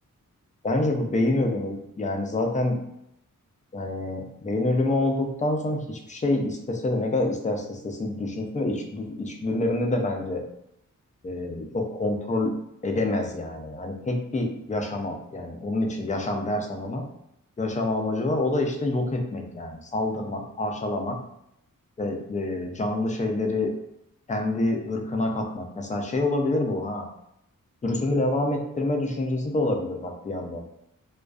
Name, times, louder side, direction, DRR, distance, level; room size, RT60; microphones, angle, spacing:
voice 1, 0.6-2.8 3.7-10.4 11.2-12.5 12.8-17.1 17.6-21.2 22.0-23.7 24.3-27.1 27.8-30.6, left 2 dB, 25° left, 2 dB, 0.4 m, -27 dB
2.4 x 2.3 x 2.3 m, 0.79 s
wide cardioid pair, 90°, 34 cm